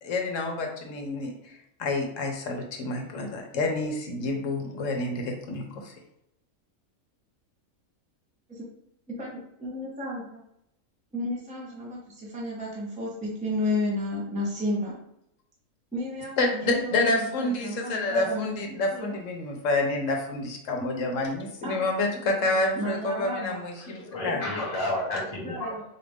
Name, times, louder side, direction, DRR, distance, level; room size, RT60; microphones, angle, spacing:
voice 1, 0.0-6.0 16.4-24.4, left 2 dB, 70° left, 2 dB, 1.1 m, -28 dB
voice 2, 9.1-10.4 11.1-15.0 15.9-18.6 18.9-19.2 21.6-21.9 22.7-23.6 25.4-25.8, left 1 dB, 5° right, -5 dB, 0.8 m, -32 dB
voice 3, 23.8-25.8, left 1 dB, 30° left, -4 dB, 1.2 m, -31 dB
4.1 x 2.5 x 3.5 m, 0.78 s
omnidirectional pair, 1.5 m